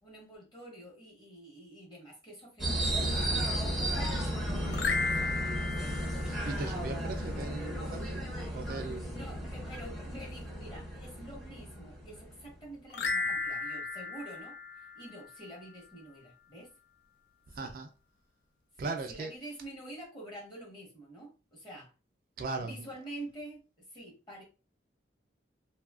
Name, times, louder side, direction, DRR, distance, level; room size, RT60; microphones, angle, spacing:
voice 1, 0.0-4.1 4.5-6.0 9.1-14.6 14.9-16.7 17.6-17.7 18.8-21.9 22.6-24.4, right 1 dB, 25° left, 1.1 m, -48 dB
sound 1, 2.6-12.5, right 1 dB, ahead, 0.6 m, -34 dB
sound 2, 4.7-7.2 12.9-15.5, left 4 dB, 60° left, 0.3 m, -35 dB
voice 2, 6.2-9.2 9.6-9.8 17.5-17.9 18.8-19.3 22.4-22.9, right 3 dB, 50° right, 0.3 m, -39 dB
2.7 x 2.3 x 2.3 m
head